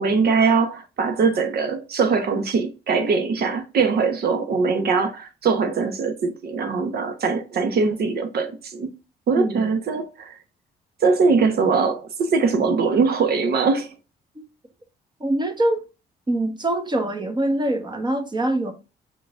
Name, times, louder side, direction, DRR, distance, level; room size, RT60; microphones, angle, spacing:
voice 1, 0.0-8.9 9.3-10.4 11.0-13.9, right 4 dB, 60° right, 0.9 m, -21 dB
voice 2, 9.4-9.7 15.2-15.8 16.3-18.7, right 1 dB, 25° right, 1.1 m, -24 dB
4.8 x 3.8 x 2.4 m
supercardioid pair, 70°, 18 cm